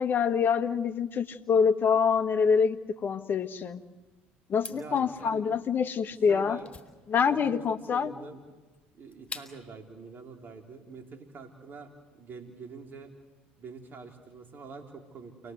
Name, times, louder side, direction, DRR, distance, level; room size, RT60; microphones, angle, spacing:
voice 1, 0.0-3.8 4.5-6.6 7.1-8.1, left 6 dB, 40° left, 8 dB, 1.7 m, -26 dB
sound 1, 4.5-9.8, left 4 dB, 20° left, 4.0 m, -47 dB
voice 2, 4.7-5.4 6.3-6.7 7.3-7.6 7.9-8.4 8.9-13.1 13.6-15.5, right 4 dB, 40° right, 3 dB, 3.6 m, -45 dB
29.0 x 20.5 x 8.1 m, 1.2 s
hypercardioid pair, 65°, 5 cm